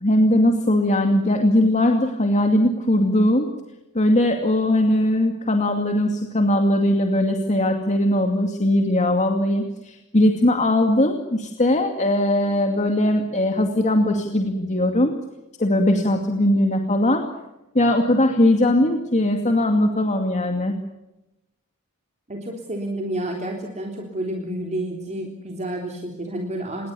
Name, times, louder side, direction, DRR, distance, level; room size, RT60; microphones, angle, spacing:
voice 1, 0.0-3.5 3.9-15.1 15.6-17.2 17.7-20.7, left 1 dB, 35° left, 4 dB, 2.4 m, -20 dB
voice 2, 22.3-26.9, right 1 dB, 30° right, 1 dB, 3.6 m, -30 dB
27.5 x 22.0 x 7.0 m, 0.98 s
head